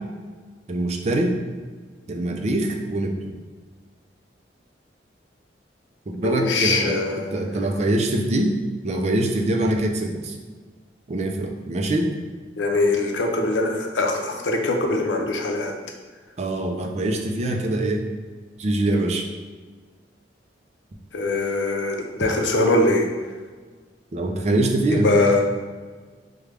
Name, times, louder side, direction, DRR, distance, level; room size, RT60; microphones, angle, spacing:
voice 1, 0.7-1.3 2.1-3.3 6.1-7.0 7.3-8.6 8.8-10.4 11.1-12.1 16.4-18.0 18.6-19.2 24.1-25.1, right 1 dB, 40° right, 2 dB, 0.4 m, -23 dB
voice 2, 6.2-7.3 12.6-15.7 21.1-23.1 24.9-25.4, left 2 dB, 85° left, 2 dB, 0.6 m, -22 dB
4.9 x 2.2 x 3.3 m, 1.4 s
head